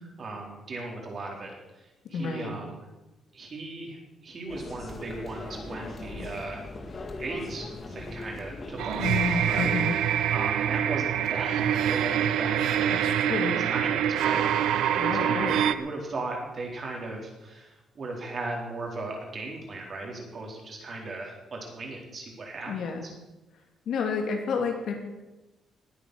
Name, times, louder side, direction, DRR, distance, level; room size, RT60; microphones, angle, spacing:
voice 1, 0.2-2.8 3.3-6.6 7.2-9.1 9.5-9.7 10.3-15.5 15.7-22.7 23.0-23.1, right 2 dB, 35° right, 0 dB, 4.0 m, -37 dB
voice 2, 2.1-2.5 9.0-10.0 13.0-13.6 15.0-15.6 22.7-23.0 23.9-24.9, left 5 dB, 60° left, 3 dB, 2.8 m, -30 dB
sound 1, 4.5-9.7, left 2 dB, 30° left, 2.0 m, -40 dB
sound 2, 8.8-15.7, right 10 dB, 85° right, 0.8 m, -25 dB
20.0 x 8.9 x 6.4 m, 1.0 s
cardioid pair, 150°, 0 cm